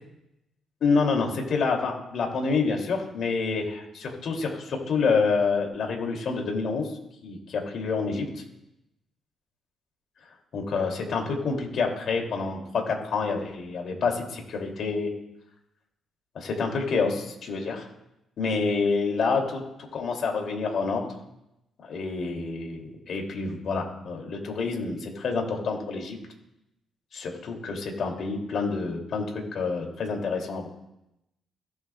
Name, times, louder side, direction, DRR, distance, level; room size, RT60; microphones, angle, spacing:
voice 1, 0.8-8.3 10.5-15.1 16.3-17.9 18.4-21.1 21.9-26.2 27.1-30.7, left 4 dB, 65° left, 2 dB, 2.7 m, -28 dB
16.5 x 7.8 x 2.3 m, 0.87 s
supercardioid pair, 65°, 0 cm